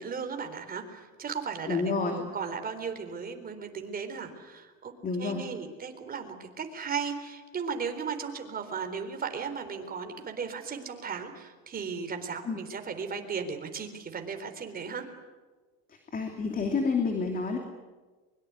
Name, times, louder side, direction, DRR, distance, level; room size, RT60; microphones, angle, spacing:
voice 1, 0.0-4.9 5.2-15.1, right 6 dB, 25° right, 6 dB, 4.0 m, -36 dB
voice 2, 1.7-2.2 5.0-5.4 12.4-12.6 16.1-17.6, left 4 dB, 25° left, 3 dB, 3.0 m, -29 dB
23.5 x 23.0 x 9.6 m, 1.3 s
cardioid pair, 130°, 33 cm